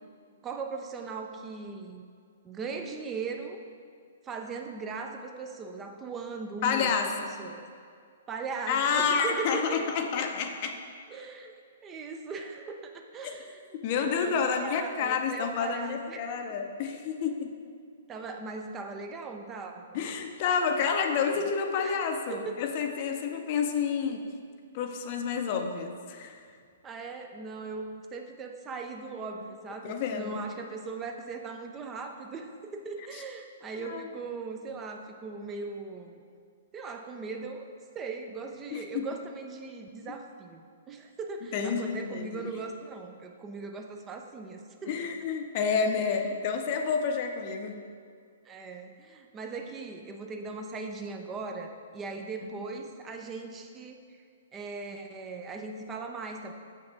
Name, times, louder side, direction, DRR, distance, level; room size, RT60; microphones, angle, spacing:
voice 1, 0.4-2.0 2.4-3.6 4.2-6.9 7.4-7.6 8.3-10.2 11.1-11.5 11.8-13.6 13.9-16.4 18.1-20.0 21.8-22.9 26.8-36.2 36.7-45.1 48.5-54.0 54.5-56.5, right 4 dB, 20° right, 4 dB, 0.5 m, -39 dB
voice 2, 6.6-7.3 8.7-10.8 13.2-13.3 13.8-17.5 19.9-24.2 24.7-26.4 29.8-30.4 33.7-34.1 38.7-39.1 41.5-42.5 44.9-47.7, left 6 dB, 40° left, 5 dB, 0.6 m, -29 dB
6.9 x 5.5 x 3.8 m, 2.2 s
figure-of-eight pair, 120°, 0 cm